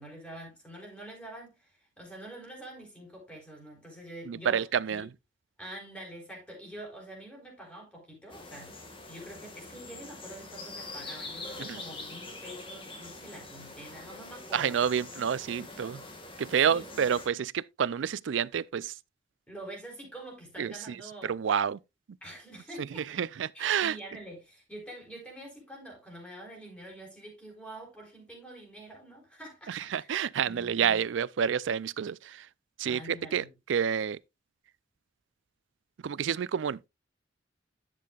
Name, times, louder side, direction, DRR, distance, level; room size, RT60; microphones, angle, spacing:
voice 1, 0.0-5.0 5.6-8.7 9.0-14.8 16.6-17.1 19.5-21.4 22.2-23.3 23.5-30.1 30.4-31.1 32.9-33.5, right 1 dB, 5° left, 4.5 m, -46 dB
voice 2, 4.3-5.1 11.6-11.8 14.5-16.0 16.4-19.0 20.6-21.0 21.2-21.8 22.8-24.0 29.7-32.5 32.8-34.2 36.0-36.9, right 8 dB, 70° right, 0.4 m, -29 dB
sound 1, 8.3-17.3, left 2 dB, 30° left, 1.8 m, -44 dB
11.0 x 7.5 x 2.4 m
head